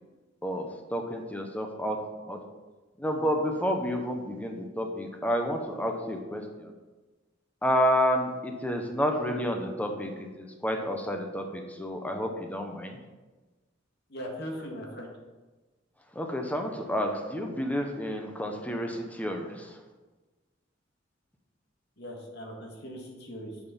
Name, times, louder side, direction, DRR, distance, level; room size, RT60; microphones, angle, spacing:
voice 1, 0.4-2.0 2.3-2.4 3.0-6.7 7.6-13.0 16.1-19.8, equal, 10° left, 3 dB, 1.0 m, -30 dB
voice 2, 14.1-15.1 22.0-23.6, equal, 60° left, 0 dB, 1.9 m, -39 dB
7.2 x 6.5 x 5.3 m, 1.2 s
head